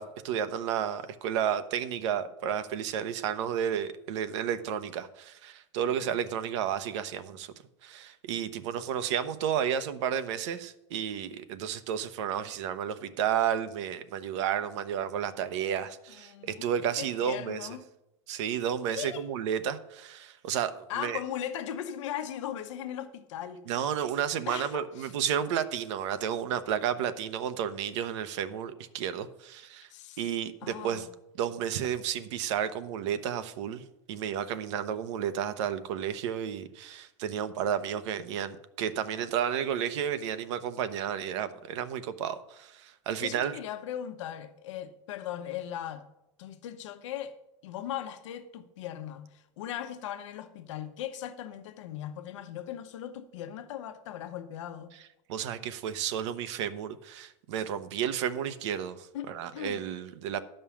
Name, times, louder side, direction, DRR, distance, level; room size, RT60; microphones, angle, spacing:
voice 1, 0.0-7.5 7.8-17.7 18.3-21.2 23.7-29.9 30.2-31.1 31.4-43.5 55.3-60.4, right 9 dB, 75° right, 0.9 m, -32 dB
voice 2, 16.2-16.7 17.0-17.9 18.9-19.2 20.9-23.6 24.5-25.1 29.9-31.1 43.2-46.1 46.4-47.3 47.6-54.9 59.1-59.8, left 10 dB, 85° left, 0.9 m, -38 dB
11.0 x 5.5 x 7.1 m
supercardioid pair, 140°, 15 cm